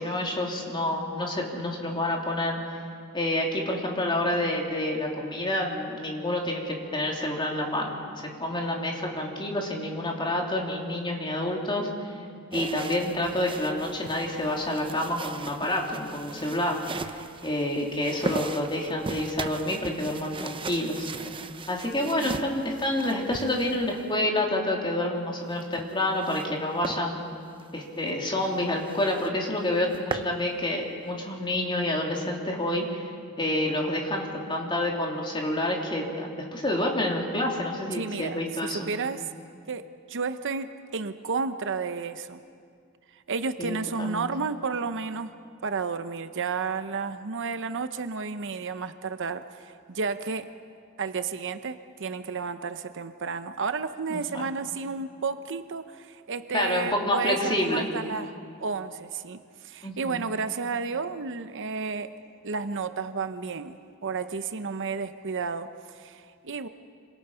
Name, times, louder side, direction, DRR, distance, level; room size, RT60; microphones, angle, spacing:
voice 1, 0.0-2.6 3.1-7.9 8.4-11.9 12.5-21.1 21.7-27.2 27.7-33.0 33.4-38.8 43.6-44.3 54.1-54.5 56.5-57.9 59.8-60.2, left 1 dB, 20° left, 0 dB, 3.3 m, -28 dB
sound 1, 12.5-24.2 25.5-26.5 26.8-27.0 27.5-27.7 28.1-28.2 28.4-28.5 28.9-29.3 29.7-30.3, right 3 dB, 25° right, 0.8 m, -38 dB
voice 2, 37.9-39.3 39.7-42.4 43.1-45.3 45.6-50.5 51.0-58.3 58.6-62.1 62.4-66.7, right 5 dB, 60° right, 10 dB, 0.8 m, -32 dB
27.0 x 26.0 x 5.7 m, 2.3 s
head